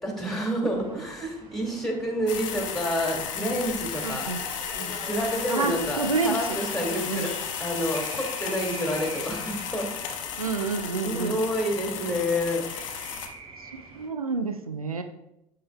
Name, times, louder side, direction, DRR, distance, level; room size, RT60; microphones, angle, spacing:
voice 1, 0.0-4.3 4.7-7.3 7.6-9.9 11.0-12.6, equal, ahead, 0 dB, 2.0 m, -29 dB
sound 1, 0.7-14.1, right 2 dB, 30° right, 1.9 m, -45 dB
sound 2, 2.3-13.3, left 8 dB, 65° left, 0.8 m, -34 dB
voice 2, 4.0-4.4 5.5-6.3 7.1-7.2 10.4-11.4 13.9-15.0, right 4 dB, 90° right, 8 dB, 0.4 m, -28 dB
8.4 x 6.6 x 2.2 m, 0.86 s
figure-of-eight pair, 70°, 18 cm